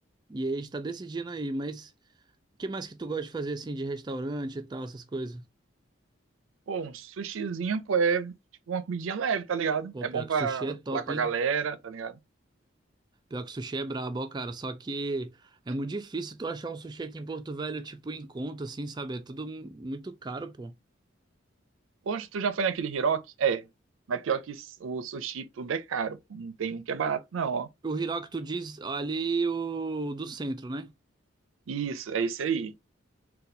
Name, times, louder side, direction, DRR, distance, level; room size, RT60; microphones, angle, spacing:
voice 1, 0.3-1.9 2.6-5.4 9.9-11.3 13.3-15.4 15.7-20.7 27.8-30.9, right 3 dB, 20° right, 0.3 m, -34 dB
voice 2, 6.7-8.3 8.7-12.2 22.1-23.7 24.1-27.7 31.7-32.7, right 6 dB, 85° right, 0.4 m, -30 dB
4.1 x 2.3 x 2.6 m
head